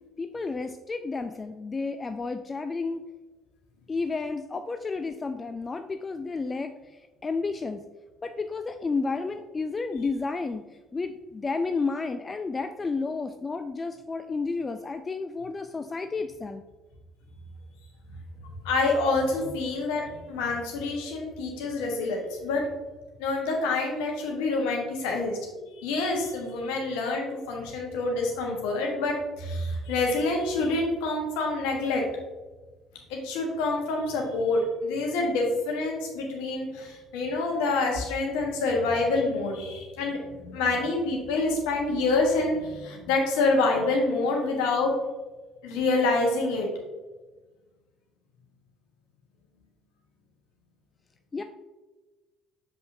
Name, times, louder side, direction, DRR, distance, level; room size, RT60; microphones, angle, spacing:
voice 1, 0.2-3.0 3.9-7.8 8.2-10.6 10.9-16.6 51.3-51.4, left 4 dB, 25° left, 8 dB, 0.3 m, -31 dB
voice 2, 18.6-22.6 23.2-25.4 25.7-32.0 33.1-44.9 45.6-46.7, left 3 dB, 65° left, 1 dB, 1.3 m, -27 dB
6.5 x 5.4 x 2.7 m, 1.2 s
figure-of-eight pair, 55°, 0 cm